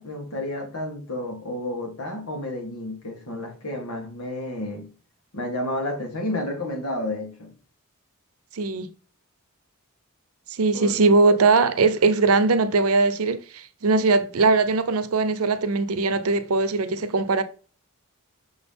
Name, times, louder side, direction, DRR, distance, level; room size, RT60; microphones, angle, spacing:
voice 1, 0.0-4.9 5.3-7.5 10.7-11.0, left 1 dB, 80° left, 2.1 m, -31 dB
voice 2, 8.5-8.9 10.5-17.4, right 3 dB, 80° right, 0.7 m, -20 dB
6.3 x 4.0 x 3.8 m
head